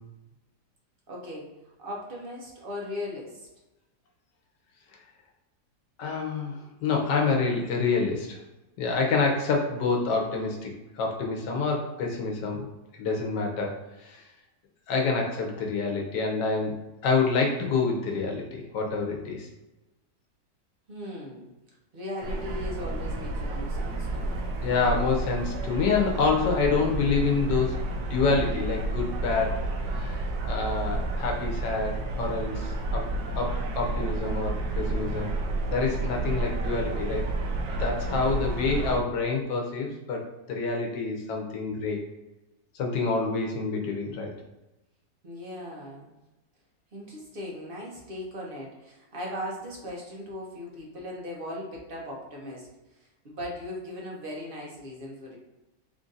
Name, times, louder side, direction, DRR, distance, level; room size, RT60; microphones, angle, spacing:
voice 1, 1.1-1.5 1.8-3.5 20.9-21.5 21.9-24.4 38.0-38.5 45.2-46.1 46.9-55.4, left 1 dB, 45° right, -3 dB, 0.8 m, -38 dB
voice 2, 6.0-8.4 8.8-10.7 11.0-12.7 12.9-13.7 14.0-14.2 14.9-16.7 17.0-19.5 24.6-29.6 29.9-33.1 33.4-35.3 35.7-42.0 42.8-44.3, left 4 dB, 80° left, 1 dB, 1.4 m, -27 dB
sound 1, 22.2-39.0, right 2 dB, 75° right, 1.0 m, -31 dB
3.7 x 2.5 x 3.9 m, 1.0 s
omnidirectional pair, 1.8 m